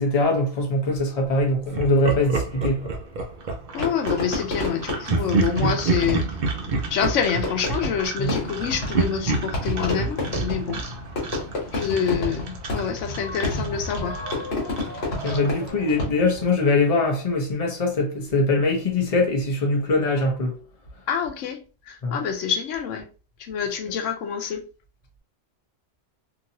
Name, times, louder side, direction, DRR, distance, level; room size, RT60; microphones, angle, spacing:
voice 1, 0.0-2.9 5.6-5.7 8.2-8.3 15.2-20.6 22.0-22.2, left 2 dB, 35° left, 0.8 m, -22 dB
Laughter, 1.7-3.9 5.1-8.6 8.9-11.7, right 3 dB, 50° right, 0.6 m, -27 dB
sound 1, 3.3-15.7, right 4 dB, 80° right, 1.0 m, -40 dB
voice 2, 3.7-6.2 6.9-10.8 11.7-14.2 15.3-15.4 21.1-21.6 21.9-23.1 23.4-24.6, left 7 dB, 90° left, 1.0 m, -27 dB
Fireworks, 3.8-16.5, left 2 dB, 60° left, 1.5 m, -30 dB
2.9 x 2.6 x 2.7 m
omnidirectional pair, 1.2 m